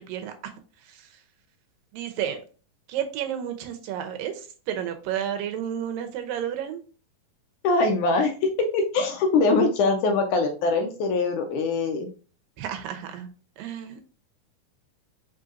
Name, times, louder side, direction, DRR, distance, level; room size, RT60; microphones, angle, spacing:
voice 1, 1.9-2.4 2.9-4.4 4.7-6.8 12.6-13.3 13.6-14.1, right 9 dB, 85° right, 7 dB, 2.5 m, -31 dB
voice 2, 7.6-12.1, left 3 dB, 80° left, 5 dB, 1.9 m, -23 dB
5.3 x 3.9 x 2.5 m, 0.38 s
omnidirectional pair, 3.9 m